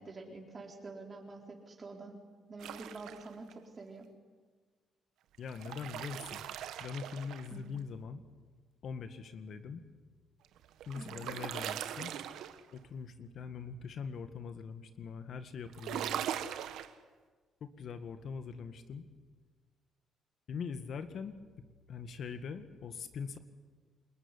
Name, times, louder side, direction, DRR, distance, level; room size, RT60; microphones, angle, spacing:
voice 1, 0.0-2.1 2.5-4.1 7.5-7.6 11.0-11.3, right 3 dB, 35° right, 1 dB, 4.1 m, -47 dB
sound 1, 2.6-3.5 5.3-7.8 10.4-12.8 15.7-16.9, right 10 dB, 85° right, 1.4 m, -40 dB
voice 2, 5.4-6.4 6.8-8.2 8.8-9.8 10.9-12.1 12.7-16.3 17.6-19.0 20.5-21.4 21.9-23.4, left 6 dB, 65° left, 9 dB, 1.9 m, -42 dB
28.0 x 21.5 x 10.0 m, 1.5 s
cardioid pair, 90°, 0 cm